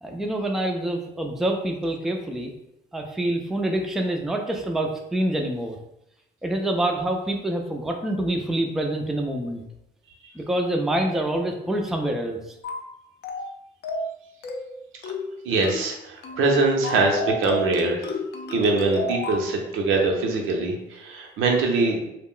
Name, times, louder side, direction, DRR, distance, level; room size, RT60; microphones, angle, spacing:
voice 1, 0.0-2.5 2.9-5.8 6.4-9.6 10.3-12.4, right 1 dB, ahead, 2 dB, 0.3 m, -26 dB
sound 1, 12.6-12.9 13.2-13.5 13.8-14.1 14.4-14.7 15.0-15.3 15.6-15.9 16.2-16.5 16.8-19.5, left 2 dB, 55° left, 0.5 m, -30 dB
voice 2, 15.4-18.1 18.5-22.1, right 3 dB, 80° right, 1 dB, 0.6 m, -23 dB
2.3 x 2.1 x 3.6 m, 0.84 s
cardioid pair, 90°, 20 cm